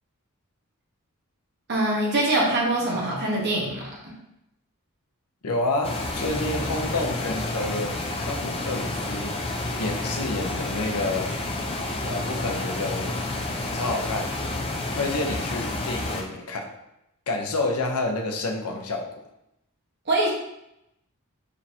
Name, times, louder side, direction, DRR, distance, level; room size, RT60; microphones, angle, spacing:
voice 1, 1.7-4.1 20.1-20.3, right 1 dB, 50° right, -3 dB, 1.1 m, -24 dB
voice 2, 5.4-9.3 9.8-11.3 12.0-13.1 13.7-14.3 14.9-16.7 17.3-19.2, left 2 dB, 85° left, 2 dB, 0.7 m, -29 dB
sound 1, 5.8-16.2, left 2 dB, 25° left, 0.5 m, -30 dB
5.0 x 3.4 x 2.8 m, 0.83 s
head